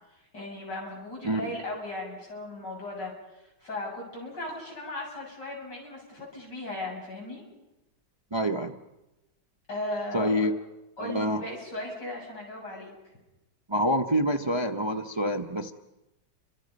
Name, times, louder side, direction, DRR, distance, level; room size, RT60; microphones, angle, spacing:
voice 1, 0.3-3.1 3.6-7.4 9.7-10.5 11.0-12.9, left 2 dB, 60° left, -1 dB, 8.1 m, -37 dB
voice 2, 8.3-8.7 10.1-10.5 11.0-11.4 13.7-15.7, equal, 40° right, 7 dB, 0.3 m, -26 dB
30.0 x 26.0 x 5.4 m, 0.98 s
omnidirectional pair, 2.1 m